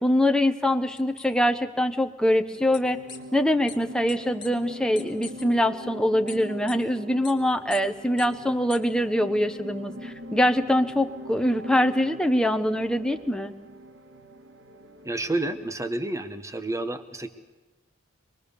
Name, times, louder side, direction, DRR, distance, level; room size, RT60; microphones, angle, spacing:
voice 1, 0.0-3.0 3.3-13.5, left 1 dB, 5° left, 6 dB, 0.9 m, -24 dB
sound 1, 1.0-1.3 2.7-2.8 3.1-3.2 3.7-3.8 4.1-4.2 4.4-4.5 5.0-5.4 6.3-6.4 6.7-6.8 7.2-7.3 7.7-7.8 8.2-8.3 8.7-8.8, left 7 dB, 25° left, 2.2 m, -40 dB
sound 2, 2.5-15.9, equal, 55° right, 1.6 m, -42 dB
voice 2, 15.0-17.3, right 2 dB, 15° right, 9 dB, 1.2 m, -30 dB
26.5 x 21.0 x 6.9 m, 1.2 s
head